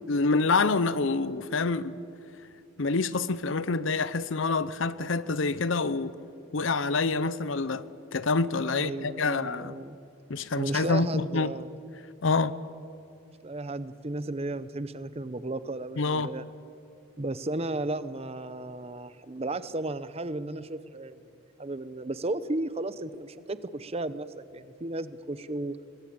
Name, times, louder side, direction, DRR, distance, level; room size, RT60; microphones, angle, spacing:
voice 1, 0.1-1.9 2.8-6.1 6.5-7.8 8.1-9.7 10.3-11.5 12.2-12.5 16.0-16.3, left 3 dB, 65° left, 16 dB, 0.7 m, -27 dB
voice 2, 8.7-10.0 10.6-11.7 13.4-16.5 17.2-21.2 21.6-25.8, right 2 dB, 30° right, 14 dB, 0.8 m, -34 dB
21.5 x 20.5 x 8.7 m, 2.6 s
head